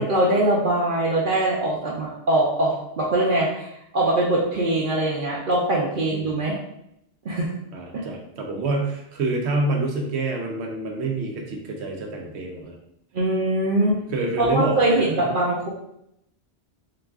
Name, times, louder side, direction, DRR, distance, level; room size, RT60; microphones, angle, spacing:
voice 1, 0.0-3.7 3.9-6.6 7.2-7.5 7.9-8.0 13.1-14.0 14.4-15.7, right 1 dB, 55° right, -4 dB, 0.8 m, -22 dB
voice 2, 6.1-6.4 7.7-12.8 14.1-15.3, right 2 dB, 85° right, 1 dB, 1.0 m, -27 dB
3.9 x 2.5 x 3.5 m, 0.78 s
omnidirectional pair, 1.1 m